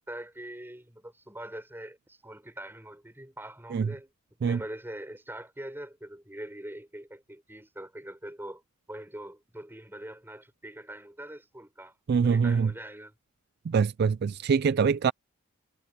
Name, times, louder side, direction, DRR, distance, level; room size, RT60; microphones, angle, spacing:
voice 1, 0.0-4.1 4.4-8.6 8.9-12.0 12.2-13.1, right 1 dB, 10° right, 6.0 m, -43 dB
voice 2, 12.1-12.7 13.7-15.1, right 6 dB, 50° right, 0.3 m, -24 dB
head